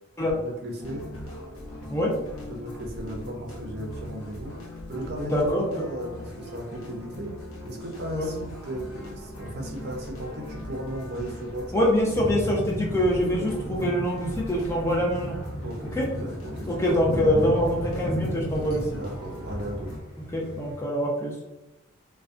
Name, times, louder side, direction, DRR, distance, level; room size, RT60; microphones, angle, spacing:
voice 1, 0.2-1.0 2.5-4.5 4.9-7.3 7.7-11.8 12.3-12.4 15.6-17.5 18.9-19.9, right 1 dB, 50° right, 0 dB, 0.5 m, -36 dB
sound 1, 0.8-20.0, left 1 dB, 85° left, 0.6 m, -39 dB
voice 2, 5.3-5.8 8.1-8.3 11.7-15.4 16.0-16.1 16.7-18.9 20.3-21.4, equal, 10° left, -3 dB, 0.3 m, -24 dB
sound 2, 12.1-20.8, equal, 55° left, 0.8 m, -35 dB
2.5 x 2.1 x 2.4 m, 0.99 s
head